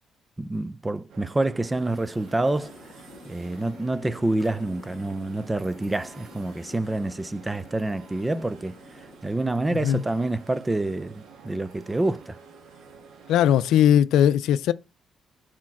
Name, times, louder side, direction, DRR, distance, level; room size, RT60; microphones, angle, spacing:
voice 1, 0.4-2.8 3.2-8.7 9.2-12.4, right 2 dB, 15° right, 0.5 m, -27 dB
sound 1, 1.1-13.8, right 6 dB, 75° right, 1.7 m, -49 dB
sound 2, 2.2-9.2, left 5 dB, 55° left, 1.7 m, -49 dB
voice 2, 9.7-10.0 13.3-14.7, left 10 dB, 85° left, 0.5 m, -19 dB
7.4 x 4.4 x 5.9 m
cardioid pair, 90°, 0 cm